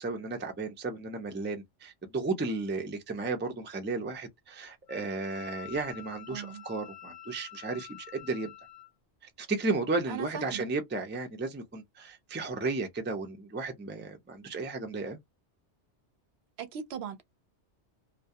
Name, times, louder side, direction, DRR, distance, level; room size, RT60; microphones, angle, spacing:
voice 1, 0.0-8.5 9.4-15.2, right 3 dB, 15° right, 0.3 m, -34 dB
Wind instrument woodwind instrument, 4.9-8.9, left 13 dB, 50° left, 0.8 m, -48 dB
voice 2, 6.3-6.6 10.1-10.6 16.6-17.2, right 7 dB, 70° right, 0.8 m, -38 dB
2.3 x 2.2 x 2.7 m
omnidirectional pair, 1.2 m